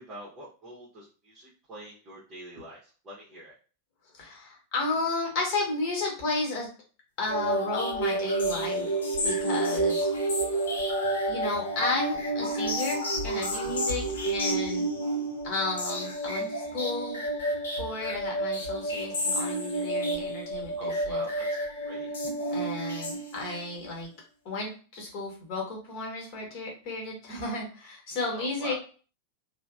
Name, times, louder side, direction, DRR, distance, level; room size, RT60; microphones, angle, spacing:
voice 1, 0.0-3.5 20.8-21.5 21.8-22.3 28.4-28.7, right 1 dB, 25° right, -8 dB, 0.8 m, -45 dB
voice 2, 4.2-6.7 7.2-8.9 9.2-10.1 10.8-10.9 11.3-14.9 15.4-17.2 17.7-21.2 22.5-24.1 24.4-28.7, left 3 dB, 40° left, 0 dB, 1.1 m, -33 dB
sound 1, 7.3-23.7, right 1 dB, 65° left, 0.6 m, -30 dB
3.1 x 2.0 x 2.3 m, 0.38 s
figure-of-eight pair, 90°, 0 cm